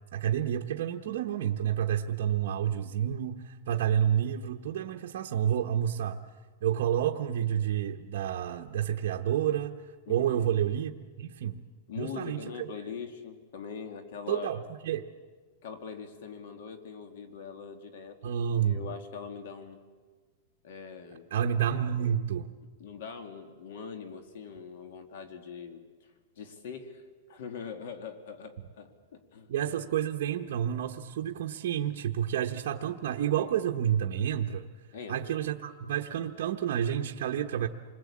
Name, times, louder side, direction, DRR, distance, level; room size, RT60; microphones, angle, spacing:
voice 1, 0.1-6.2 6.6-9.8 10.1-11.6 12.0-12.7 14.3-15.0 18.2-18.9 21.3-22.5 29.5-34.7 35.1-37.7, right 10 dB, 60° right, 2 dB, 1.1 m, -29 dB
voice 2, 10.1-10.5 11.9-14.6 15.6-18.2 18.6-19.8 20.6-21.3 22.8-29.7 34.9-35.4, left 6 dB, 65° left, 8 dB, 2.3 m, -42 dB
28.0 x 21.0 x 8.6 m, 1.5 s
supercardioid pair, 165°, 0 cm